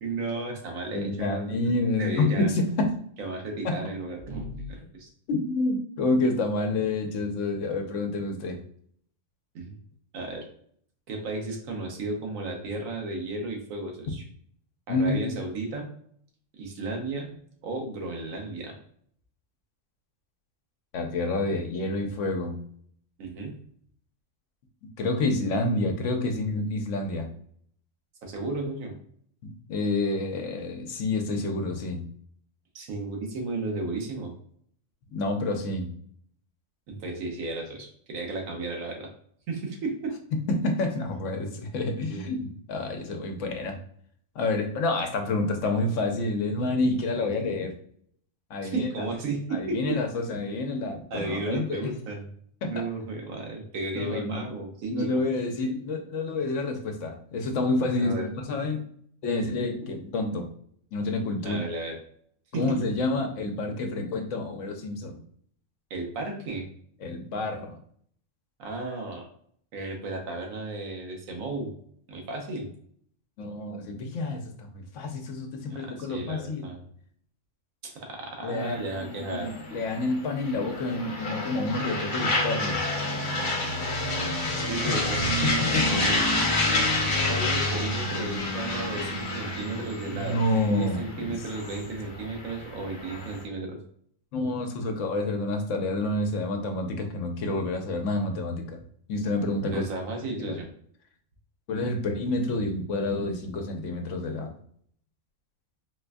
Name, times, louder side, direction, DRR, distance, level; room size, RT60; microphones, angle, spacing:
voice 1, 0.0-2.5 3.2-5.1 9.5-9.8 10.1-10.5 11.1-14.2 14.9-15.9 16.6-17.3 17.6-18.7 23.2-23.5 28.2-28.9 32.7-34.3 36.9-39.1 39.5-40.2 42.0-42.2 48.6-50.0 51.1-52.3 52.6-55.1 58.0-58.3 61.4-62.0 62.5-62.8 65.9-66.6 68.6-69.3 69.7-71.7 72.1-72.7 75.7-76.8 77.8-79.5 83.6-84.4 84.7-85.4 85.8-86.2 87.3-93.8 99.7-100.7, right 2 dB, 90° right, 2 dB, 1.2 m, -34 dB
voice 2, 0.9-2.9 3.6-3.8 5.3-8.6 14.9-15.4 20.9-22.6 25.0-27.3 29.4-32.0 35.1-35.9 40.3-43.8 44.4-47.7 48.5-49.1 49.5-51.9 52.6-52.9 53.9-54.6 54.9-58.8 59.2-60.5 60.9-61.6 62.5-65.2 67.0-67.8 73.4-76.7 78.4-82.8 85.4-85.9 90.0-91.4 94.3-98.8 99.1-99.8 100.4-100.6 101.7-104.5, left 2 dB, 70° left, 5 dB, 0.9 m, -28 dB
sound 1, 78.6-93.4, left 2 dB, 40° left, 1.1 m, -29 dB
4.3 x 2.5 x 2.2 m, 0.63 s
omnidirectional pair, 1.4 m